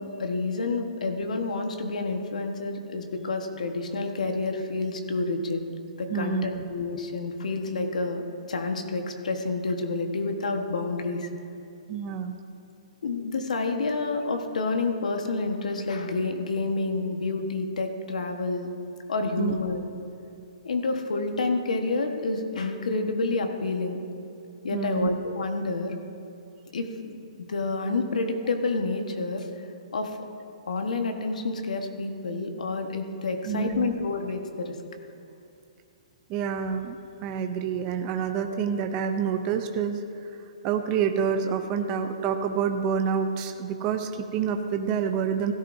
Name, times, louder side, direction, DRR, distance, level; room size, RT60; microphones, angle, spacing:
voice 1, 0.0-5.6 6.0-11.3 13.0-18.7 19.1-19.8 20.6-24.0 24.6-26.0 26.7-27.2 27.5-29.7 29.9-30.2 30.7-34.8, left 3 dB, 85° left, 5 dB, 1.3 m, -29 dB
voice 2, 6.1-6.6 11.9-12.4 19.4-19.5 24.7-25.1 33.5-34.0 36.3-37.0 37.2-40.0 40.6-45.5, right 7 dB, 20° right, 5 dB, 0.5 m, -27 dB
16.5 x 10.5 x 2.7 m, 2.6 s
hypercardioid pair, 165°, 4 cm